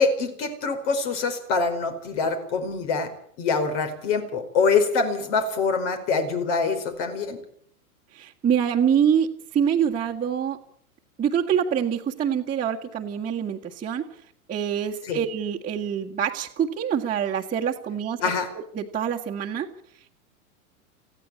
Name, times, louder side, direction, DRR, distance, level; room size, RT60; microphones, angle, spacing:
voice 1, 0.0-3.1 3.4-7.4 15.1-15.2 18.2-18.5, left 4 dB, 55° left, 7 dB, 4.9 m, -24 dB
voice 2, 8.1-9.3 9.5-10.6 11.2-14.0 14.5-18.2 18.8-19.7, right 8 dB, 20° right, -4 dB, 1.8 m, -25 dB
19.5 x 15.5 x 8.5 m, 0.64 s
hypercardioid pair, 100°, 44 cm